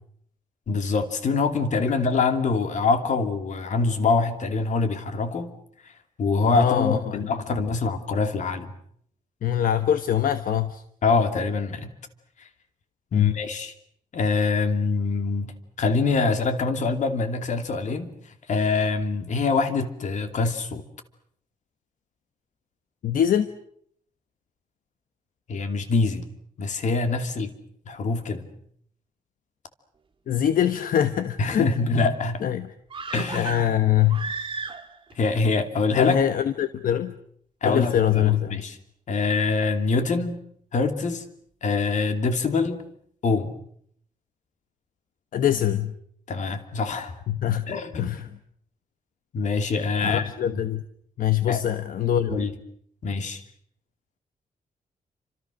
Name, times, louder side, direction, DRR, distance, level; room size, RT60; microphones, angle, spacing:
voice 1, 0.7-5.5 5.8-5.9 6.2-8.7 11.0-11.9 12.4-12.5 13.1-13.7 14.1-15.5 15.8-18.1 18.5-20.9 25.5-26.3 26.6-27.5 27.9-28.5 31.4-32.4 33.1-33.7 35.1-36.2 37.6-38.8 39.1-40.4 40.7-41.2 41.6-42.8 43.2-43.5 46.3-47.1 47.7-48.1 49.3-50.6 51.5-51.6 52.3-52.5 53.0-53.4, left 4 dB, 60° left, 7 dB, 2.8 m, -24 dB
voice 2, 6.5-7.2 9.4-10.8 13.1-13.4 23.0-23.5 30.3-31.7 32.4-32.7 33.3-34.3 35.9-37.1 37.6-38.6 45.3-45.9 47.3-47.6 48.0-48.3 50.0-50.8 51.2-52.4, left 10 dB, 80° left, 10 dB, 1.1 m, -23 dB
sound 1, 32.9-35.1 35.4-35.5, right 5 dB, 35° right, 2.2 m, -34 dB
29.5 x 26.0 x 6.4 m, 0.67 s
wide cardioid pair, 165°, 14 cm